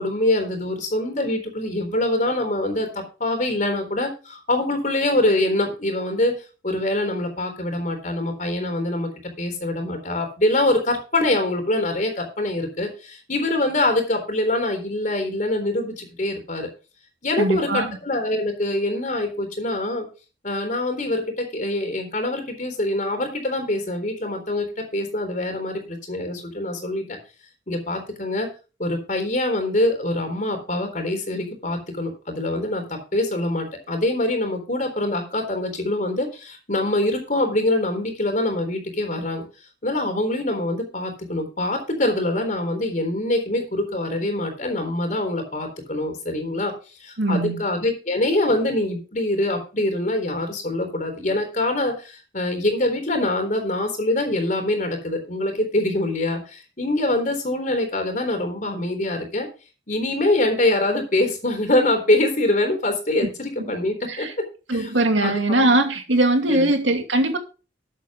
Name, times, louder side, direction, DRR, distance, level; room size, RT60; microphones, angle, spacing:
voice 1, 0.0-6.4 6.6-9.1 9.4-16.7 17.2-20.1 20.4-27.0 27.7-28.5 28.8-39.4 39.8-46.7 47.0-59.5 59.9-64.3 64.7-64.9 65.2-65.3 66.5-66.7, left 1 dB, 40° left, 3.8 m, -24 dB
voice 2, 17.4-17.9 47.2-47.6 63.7-63.8 64.1-64.3 64.7-67.4, right 2 dB, 85° right, 2.4 m, -21 dB
13.5 x 8.4 x 3.7 m
head